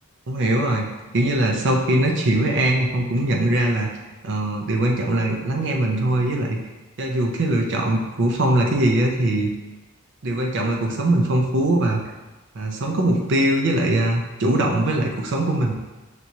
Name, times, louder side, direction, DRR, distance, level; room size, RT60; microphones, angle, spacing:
voice 1, 0.3-0.9 1.1-3.9 4.2-6.6 7.0-9.5 10.2-12.0 12.5-15.7, right 1 dB, 55° right, 1 dB, 0.6 m, -21 dB
5.9 x 3.1 x 2.7 m, 1.1 s
head